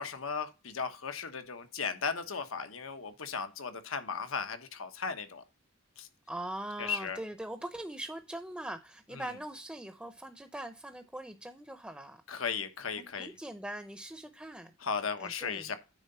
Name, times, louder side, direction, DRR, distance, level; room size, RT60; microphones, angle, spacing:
voice 1, 0.0-5.4 6.0-6.1 6.8-7.2 9.1-9.3 12.3-13.3 14.8-15.8, left 5 dB, 90° left, 1.1 m, -36 dB
voice 2, 6.3-12.2 13.0-14.7 15.2-15.7, right 1 dB, 5° right, 0.6 m, -42 dB
9.3 x 3.8 x 5.6 m
head